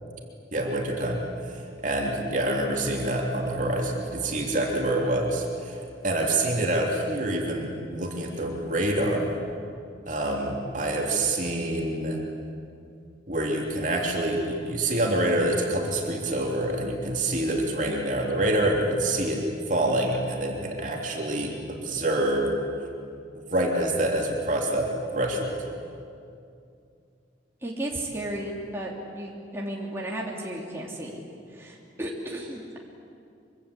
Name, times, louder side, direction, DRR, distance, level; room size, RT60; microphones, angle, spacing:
voice 1, 0.5-1.2 1.8-5.8 6.0-9.3 10.1-12.2 13.3-19.4 19.7-22.5 23.3-25.6, right 1 dB, 45° right, 0 dB, 3.2 m, -26 dB
voice 2, 27.6-31.2 31.5-32.8, right 1 dB, 15° right, -3 dB, 3.2 m, -34 dB
24.5 x 24.5 x 8.5 m, 2.5 s
head